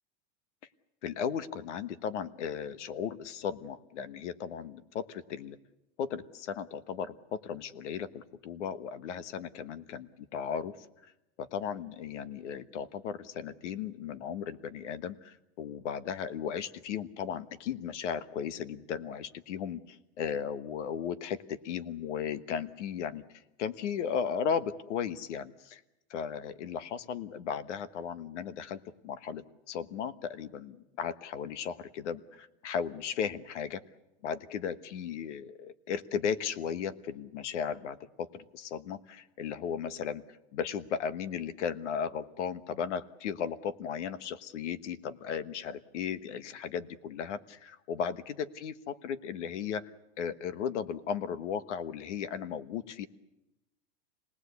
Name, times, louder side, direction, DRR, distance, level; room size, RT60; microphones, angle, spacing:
voice 1, 1.0-5.6 6.0-10.9 11.4-23.2 23.6-25.8 26.1-33.8 34.2-40.2 40.5-49.9 50.2-53.1, left 7 dB, 85° left, 14 dB, 1.4 m, -36 dB
26.5 x 19.5 x 8.3 m, 0.96 s
supercardioid pair, 175°, 35 cm